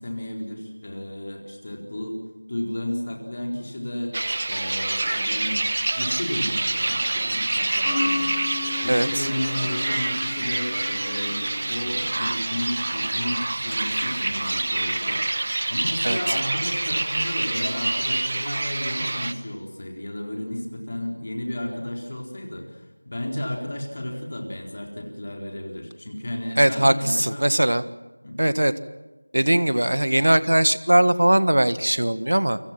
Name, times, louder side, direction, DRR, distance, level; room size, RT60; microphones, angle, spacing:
voice 1, 0.0-2.2 2.5-4.2 4.5-5.7 6.0-27.5 28.2-28.4, left 1 dB, 25° left, 1 dB, 4.1 m, -33 dB
sound 1, 4.1-19.3, right 2 dB, 25° right, 0.9 m, -26 dB
Mallet percussion, 7.9-13.2, left 3 dB, 5° left, 2.2 m, -34 dB
voice 2, 8.9-9.3 16.0-16.2 26.6-27.8 28.4-28.7 29.3-32.6, right 1 dB, 60° right, 14 dB, 1.6 m, -20 dB
29.5 x 25.0 x 6.0 m, 1.2 s
figure-of-eight pair, 180°, 0 cm